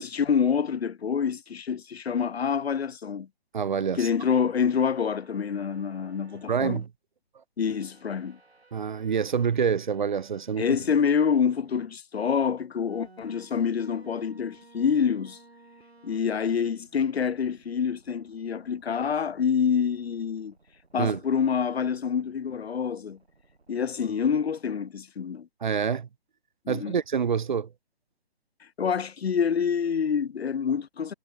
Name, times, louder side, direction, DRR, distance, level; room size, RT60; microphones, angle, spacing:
voice 1, 0.0-3.3 4.0-6.8 7.6-8.4 10.6-15.4 16.0-20.5 20.9-23.2 23.7-25.5 26.7-26.9 28.8-31.1, left 7 dB, 75° left, 0.6 m, -27 dB
voice 2, 3.5-4.1 6.5-6.9 8.7-10.6 21.0-21.2 25.6-26.1 26.7-27.7, right 7 dB, 50° right, 0.5 m, -26 dB
sound 1, 4.3-6.9 7.6-11.0 11.6-11.7 12.9-24.1, right 3 dB, 80° right, 2.0 m, -58 dB
figure-of-eight pair, 145°, 31 cm